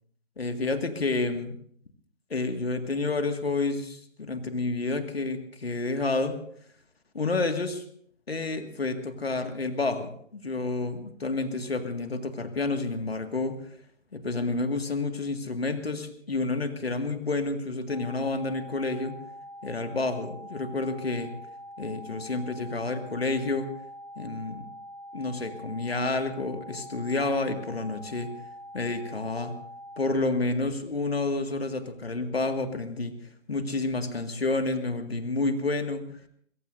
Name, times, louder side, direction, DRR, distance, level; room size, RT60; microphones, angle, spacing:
voice 1, 0.4-1.6 2.3-6.4 7.1-7.8 8.3-13.6 14.1-19.2 19.6-21.3 21.8-23.7 24.2-24.7 25.1-28.3 28.7-29.6 30.0-33.1 33.5-36.0, left 3 dB, 55° left, 7 dB, 2.0 m, -29 dB
sound 1, 17.9-30.1, equal, 35° right, 7.1 m, -44 dB
22.5 x 22.0 x 2.7 m, 0.63 s
figure-of-eight pair, 150°, 36 cm